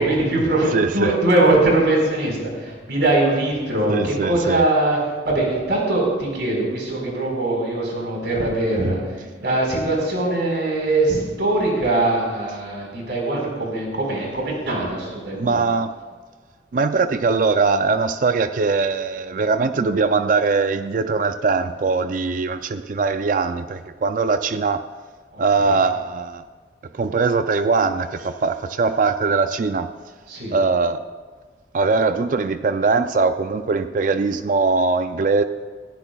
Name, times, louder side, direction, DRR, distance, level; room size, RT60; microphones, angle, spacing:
voice 1, 0.0-5.0 5.2-15.6 25.3-25.8 30.3-30.6, right 2 dB, 75° right, -2 dB, 4.5 m, -21 dB
voice 2, 0.7-1.1 3.9-4.6 15.3-15.9 16.7-24.8 25.4-26.5 26.9-29.9 30.5-31.0 31.7-35.4, right 4 dB, 45° right, 10 dB, 0.4 m, -21 dB
20.5 x 14.0 x 2.3 m, 1.5 s
head